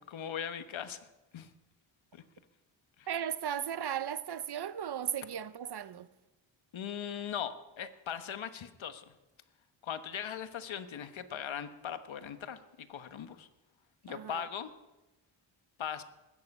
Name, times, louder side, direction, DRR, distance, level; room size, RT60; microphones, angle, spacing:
voice 1, 0.1-1.1 1.3-1.5 2.1-2.2 3.0-3.1 6.7-9.1 9.8-13.5 14.0-14.7 15.8-16.0, left 8 dB, 70° left, 1.3 m, -39 dB
voice 2, 3.1-6.1 14.1-14.4, right 9 dB, 55° right, 0.8 m, -36 dB
21.0 x 9.6 x 5.5 m
cardioid pair, 75°, 48 cm